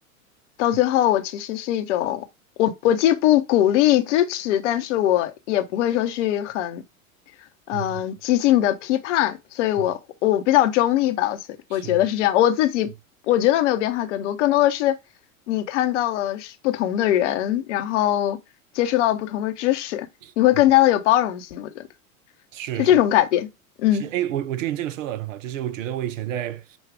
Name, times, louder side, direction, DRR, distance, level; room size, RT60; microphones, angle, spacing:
voice 1, 0.6-2.2 2.6-6.8 7.7-11.4 11.7-12.9 13.3-15.0 15.5-18.4 18.7-20.1 20.4-21.8 22.8-23.5 23.8-24.0, left 13 dB, 55° left, 0.8 m, -21 dB
voice 2, 7.7-8.0 9.8-9.9 11.7-12.1 20.2-20.3 22.5-23.0 23.9-26.8, right 12 dB, 65° right, 0.6 m, -30 dB
6.1 x 2.3 x 3.4 m
figure-of-eight pair, 85°, 42 cm